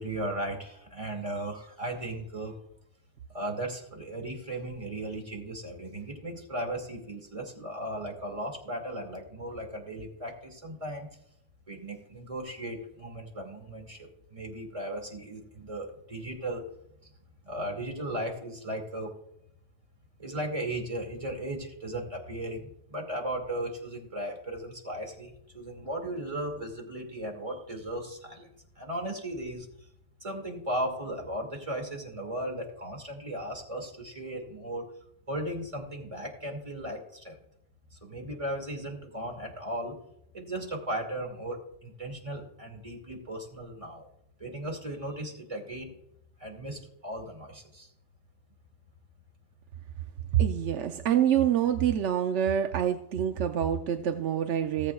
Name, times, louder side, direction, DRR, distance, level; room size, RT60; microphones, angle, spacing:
voice 1, 0.0-2.6 3.3-11.1 11.7-16.6 17.4-19.1 20.2-28.5 28.8-29.9 30.2-34.9 35.3-37.4 37.9-40.0 40.3-44.1 44.4-45.9 46.4-47.9, right 1 dB, 30° right, 1 dB, 2.3 m, -36 dB
voice 2, 50.3-54.9, right 10 dB, 90° right, 6 dB, 1.0 m, -26 dB
18.5 x 8.1 x 2.3 m, 0.76 s
omnidirectional pair, 1.2 m